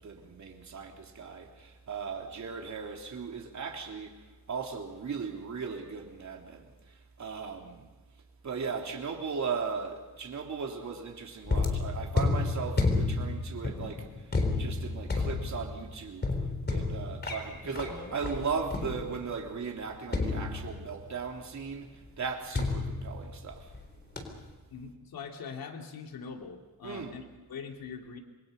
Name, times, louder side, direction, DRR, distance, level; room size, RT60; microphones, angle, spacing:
voice 1, 0.0-4.2 4.5-6.7 7.2-7.9 8.4-14.1 14.6-16.3 16.7-23.7 26.8-27.2, right 5 dB, 50° right, 3.5 m, -37 dB
sound 1, 11.5-19.4 20.1-21.1 22.5-23.8 24.2-24.5, left 3 dB, 25° left, 3.9 m, -31 dB
voice 2, 24.7-28.2, left 5 dB, 70° left, 2.7 m, -42 dB
28.0 x 22.5 x 5.5 m
cardioid pair, 130°, 36 cm